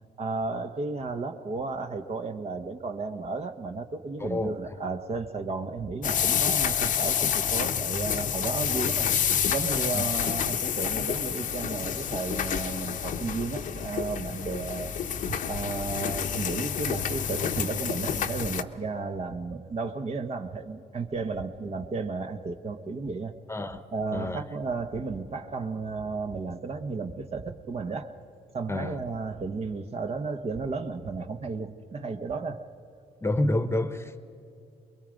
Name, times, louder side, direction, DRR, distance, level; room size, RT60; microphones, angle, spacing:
voice 1, 0.2-9.1 9.5-14.9 15.2-23.3 23.9-28.1 28.5-32.7, right 4 dB, 40° right, 1.2 m, -33 dB
voice 2, 4.2-4.7 9.9-10.0 23.5-23.8 24.1-24.4 28.7-29.0 33.2-34.2, left 1 dB, 15° left, 1.1 m, -29 dB
sound 1, 6.0-18.6, left 8 dB, 60° left, 0.9 m, -28 dB
23.5 x 22.0 x 5.2 m
supercardioid pair, 80°, 15 cm